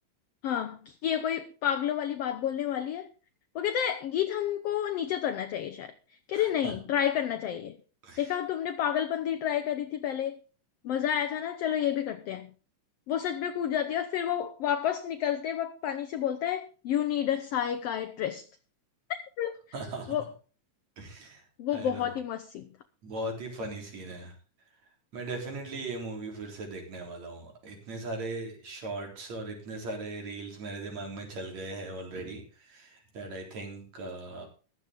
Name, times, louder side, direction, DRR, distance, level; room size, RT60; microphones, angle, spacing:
voice 1, 0.4-3.1 3.6-5.9 6.3-7.8 8.2-10.4 10.8-12.5 13.1-18.4 19.4-19.5 20.1-20.2 21.6-22.7, left 10 dB, 65° left, 1.6 m, -30 dB
voice 2, 6.3-6.7 8.0-8.4 19.7-20.2 21.0-21.4 21.7-22.1 23.0-24.3 25.1-34.5, right 2 dB, 60° right, 5.0 m, -39 dB
15.0 x 12.5 x 3.7 m
omnidirectional pair, 3.6 m